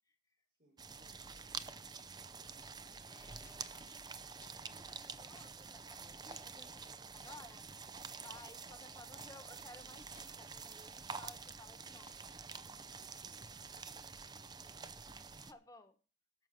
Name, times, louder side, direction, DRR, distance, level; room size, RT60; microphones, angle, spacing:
voice 1, 0.5-2.7 3.3-4.0 8.7-9.6 12.7-15.2, right 1 dB, 60° right, -4 dB, 5.2 m, -72 dB
sound 1, 0.8-15.5, right 5 dB, 25° right, 0.6 m, -48 dB
voice 2, 3.0-3.9 4.7-7.6 8.2-12.3 15.4-16.0, left 2 dB, 20° left, 8 dB, 1.3 m, -58 dB
sound 2, 3.4-3.6 4.4-4.7 5.4-5.5 6.3-6.4 7.3-7.4 8.2-8.4 9.2-9.3 10.1-10.7 11.1-11.2 12.1-12.3, left 7 dB, 45° left, 1.1 m, -65 dB
13.0 x 6.2 x 7.5 m, 0.38 s
head